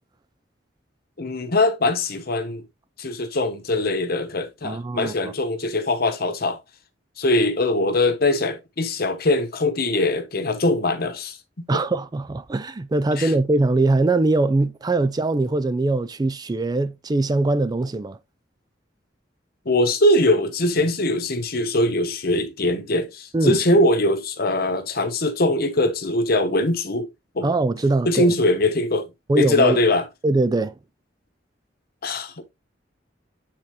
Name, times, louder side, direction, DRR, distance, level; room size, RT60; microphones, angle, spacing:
voice 1, 1.2-2.6 3.0-6.6 7.2-11.8 13.2-13.3 19.6-27.1 27.3-27.5 28.0-29.1 29.4-30.0 32.0-32.5, left 1 dB, 55° left, 1.1 m, -22 dB
voice 2, 4.6-5.3 11.7-18.2 23.3-23.6 27.4-28.3 29.3-29.8 30.2-30.7, right 2 dB, 20° right, 0.3 m, -22 dB
8.7 x 4.2 x 3.0 m
head